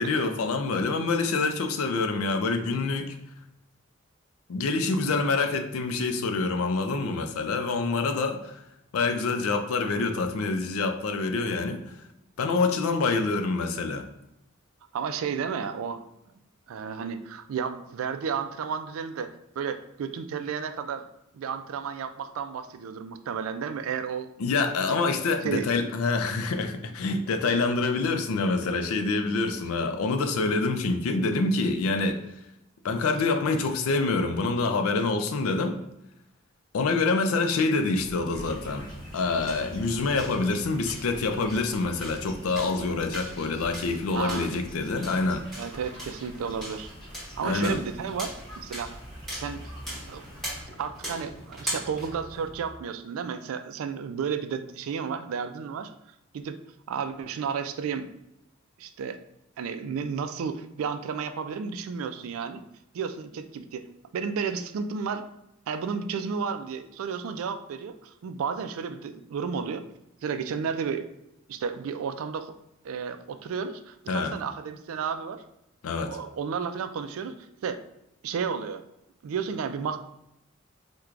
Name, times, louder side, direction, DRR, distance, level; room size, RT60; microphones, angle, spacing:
voice 1, 0.0-3.1 4.5-8.6 8.9-12.0 12.4-14.0 24.4-32.2 32.8-35.8 36.7-38.9 39.1-45.4 47.4-47.8 74.1-74.3 75.8-76.2, left 3 dB, 85° left, 7 dB, 0.4 m, -26 dB
voice 2, 14.9-16.0 16.7-21.1 21.3-24.3 25.4-25.7 44.1-44.6 45.6-46.9 47.4-49.0 49.3-49.6 50.1-50.2 50.8-55.9 56.3-56.6 56.9-58.1 58.8-59.2 59.6-62.6 62.9-63.9 64.1-65.2 65.7-69.8 70.2-71.1 71.5-72.5 72.8-75.4 76.0-77.4 77.6-77.8 78.2-78.8 79.2-80.0, right 6 dB, 75° right, 9 dB, 0.3 m, -32 dB
sound 1, 38.0-52.7, equal, ahead, 1.0 m, -41 dB
sound 2, 38.3-50.6, equal, 20° left, 1.0 m, -46 dB
4.5 x 2.2 x 2.4 m, 0.84 s
head